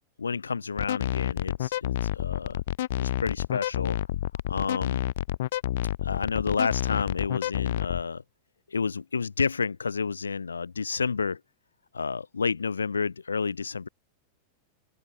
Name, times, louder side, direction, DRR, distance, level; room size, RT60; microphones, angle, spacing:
voice 1, 0.2-2.6 3.0-4.0 4.5-5.1 6.0-8.2 8.7-11.4 11.9-13.9, left 5 dB, 75° left, 3.5 m, -30 dB
sound 1, 0.8-8.0, left 14 dB, 55° left, 0.9 m, -29 dB
open air
figure-of-eight pair, 90°, 0 cm